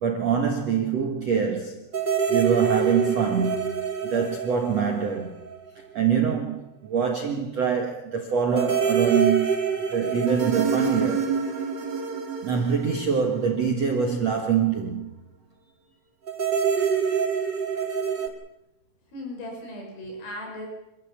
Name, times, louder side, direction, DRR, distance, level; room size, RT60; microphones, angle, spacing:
voice 1, 0.0-1.9 2.3-5.4 5.7-9.6 9.9-11.3 12.4-15.1, right 7 dB, 80° right, 3 dB, 1.4 m, -25 dB
sound 1, 1.9-5.7 5.9-6.0 8.5-13.9 16.3-18.3, right 6 dB, 35° right, 2.0 m, -26 dB
voice 2, 19.1-20.7, left 1 dB, 65° left, 0 dB, 7.8 m, -37 dB
26.5 x 14.0 x 8.5 m, 0.93 s
omnidirectional pair, 5.9 m